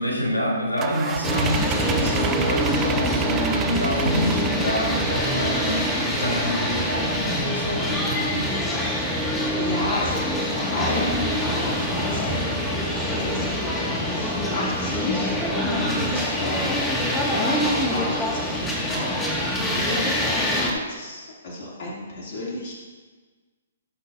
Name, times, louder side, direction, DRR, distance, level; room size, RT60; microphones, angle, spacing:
voice 1, 0.0-5.8 6.1-8.5 15.8-16.1, equal, 90° left, -2 dB, 3.4 m, -27 dB
sound 1, 0.8-6.3, right 8 dB, 20° right, 0.6 m, -30 dB
sound 2, 1.2-20.7, left 1 dB, 10° left, 1.9 m, -25 dB
voice 2, 9.5-13.7 14.0-22.7, left 1 dB, 45° left, -4 dB, 2.7 m, -32 dB
18.5 x 6.6 x 2.6 m, 1.4 s
figure-of-eight pair, 125°, 0 cm